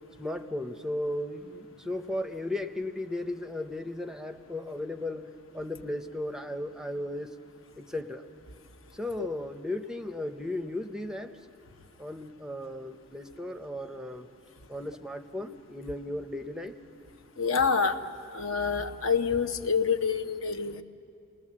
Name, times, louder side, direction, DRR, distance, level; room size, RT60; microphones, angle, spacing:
voice 1, 0.2-7.4 7.8-8.2 8.9-11.4 12.0-14.3 14.7-16.7, left 1 dB, 5° right, 8 dB, 0.6 m, -35 dB
voice 2, 17.4-18.0 18.3-20.8, left 5 dB, 70° left, 7 dB, 1.0 m, -27 dB
29.0 x 19.5 x 7.4 m, 2.6 s
head